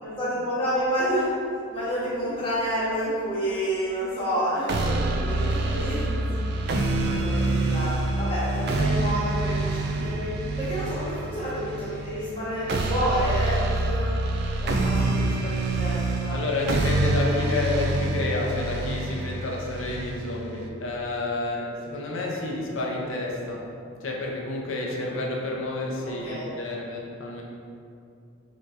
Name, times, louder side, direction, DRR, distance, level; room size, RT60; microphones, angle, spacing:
voice 1, 0.0-1.3 1.7-6.4 7.0-7.9 8.2-10.3 10.6-14.1 14.6-16.4 26.0-26.5, equal, 25° left, -10 dB, 1.3 m, -29 dB
sound 1, 4.7-20.7, right 2 dB, 50° right, 0.3 m, -26 dB
voice 2, 7.1-7.8 9.9-10.1 16.3-23.7 24.0-27.4, left 2 dB, 60° left, -1 dB, 0.6 m, -30 dB
5.4 x 3.0 x 2.6 m, 2.5 s
head